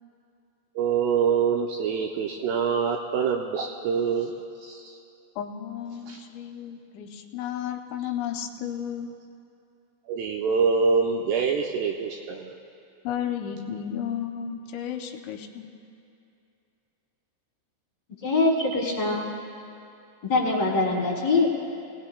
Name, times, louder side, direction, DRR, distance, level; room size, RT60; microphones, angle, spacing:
voice 1, 0.8-4.3 4.6-4.9 6.1-6.2 10.1-12.6, right 6 dB, 90° right, 0 dB, 2.4 m, -25 dB
voice 2, 5.4-9.1 13.0-15.7, left 9 dB, 85° left, 4 dB, 2.9 m, -33 dB
voice 3, 18.2-19.3 20.2-21.5, left 3 dB, 50° left, -3 dB, 2.1 m, -23 dB
25.0 x 18.0 x 2.2 m, 2.6 s
omnidirectional pair, 5.4 m